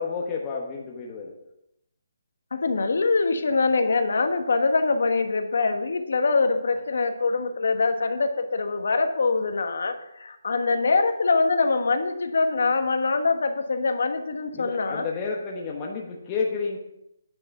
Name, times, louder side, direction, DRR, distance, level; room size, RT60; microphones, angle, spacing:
voice 1, 0.0-1.4 14.5-16.8, left 4 dB, 20° left, -2 dB, 1.2 m, -30 dB
voice 2, 2.5-15.0, left 3 dB, 65° left, 7 dB, 1.3 m, -24 dB
9.6 x 5.8 x 5.9 m, 0.80 s
hypercardioid pair, 170°, 0 cm